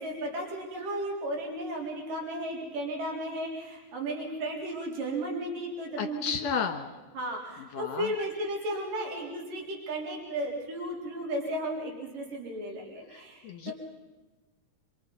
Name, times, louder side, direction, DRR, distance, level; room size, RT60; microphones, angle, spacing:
voice 1, 0.0-6.2 7.1-13.7, right 1 dB, 70° right, -1 dB, 5.4 m, -34 dB
voice 2, 6.0-7.0 7.7-8.1 13.1-13.7, left 6 dB, 55° left, 5 dB, 2.5 m, -33 dB
26.5 x 25.5 x 5.5 m, 1.2 s
omnidirectional pair, 4.0 m